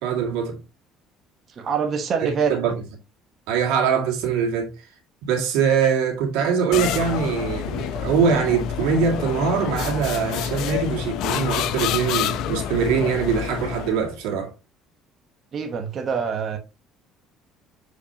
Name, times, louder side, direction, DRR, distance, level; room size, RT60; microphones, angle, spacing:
voice 1, 0.0-0.6 2.2-2.7 3.5-4.9 5.3-14.5, right 6 dB, 90° right, 2.1 m, -23 dB
voice 2, 1.6-2.5 15.5-16.6, right 6 dB, 40° right, 1.0 m, -25 dB
sound 1, 6.7-14.1, left 10 dB, 70° left, 0.6 m, -28 dB
6.7 x 4.9 x 2.8 m
cardioid pair, 130°, 0 cm